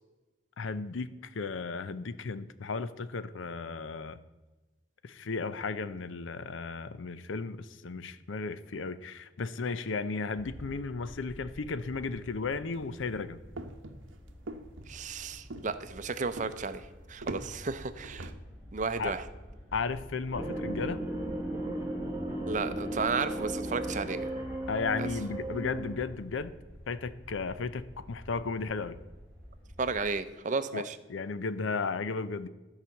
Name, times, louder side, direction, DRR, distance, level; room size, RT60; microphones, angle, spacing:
voice 1, 0.6-4.2 5.0-13.4 19.0-19.1 19.7-21.0 24.7-26.5 26.9-29.0 30.7-30.8 31.1-32.5, left 4 dB, 75° left, 14 dB, 0.6 m, -34 dB
sound 1, 10.4-30.1, equal, 5° left, 2.0 m, -50 dB
sound 2, 12.7-18.3, right 2 dB, 80° right, 0.9 m, -44 dB
voice 2, 14.9-18.3 18.7-19.3 22.5-24.3 25.0-25.1 29.8-31.0, right 4 dB, 40° right, 11 dB, 0.6 m, -33 dB
sound 3, 20.3-26.1, right 1 dB, 15° right, 1.2 m, -35 dB
12.0 x 4.9 x 7.1 m, 1.2 s
head